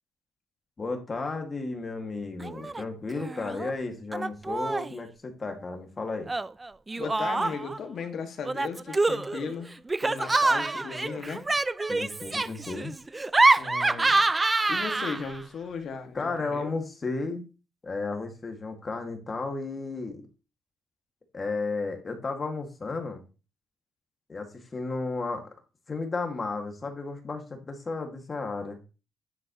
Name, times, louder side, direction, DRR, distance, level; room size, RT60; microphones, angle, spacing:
voice 1, 0.8-6.3 11.9-12.9 16.1-17.4 17.8-20.2 21.3-23.2 24.3-25.5 25.9-28.8, left 3 dB, 35° left, 4 dB, 2.1 m, -33 dB
Laughter, 2.4-2.8 3.1-3.7 4.1-5.0 6.3-7.8 8.4-15.4, right 2 dB, 20° right, 0.4 m, -26 dB
voice 2, 7.0-9.7 10.0-11.4 13.6-14.3 14.7-16.7, left 5 dB, 65° left, 6 dB, 1.9 m, -36 dB
10.0 x 7.6 x 3.1 m, 0.32 s
cardioid pair, 90°, 0 cm